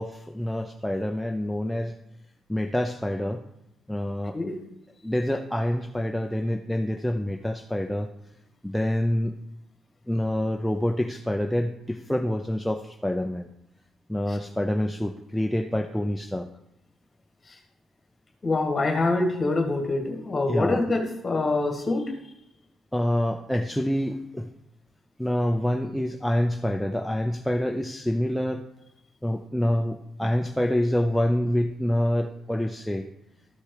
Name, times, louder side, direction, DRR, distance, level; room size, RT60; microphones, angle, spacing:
voice 1, 0.0-1.9 2.5-3.4 3.9-4.4 5.0-8.1 8.6-9.3 10.1-13.5 14.1-16.5 20.5-20.8 22.9-24.5 25.2-28.6 29.2-33.0, left 1 dB, 5° left, 4 dB, 0.5 m, -26 dB
voice 2, 18.4-22.1, left 2 dB, 30° left, 4 dB, 1.9 m, -25 dB
12.5 x 4.3 x 4.9 m, 0.82 s
cardioid pair, 90°, 0 cm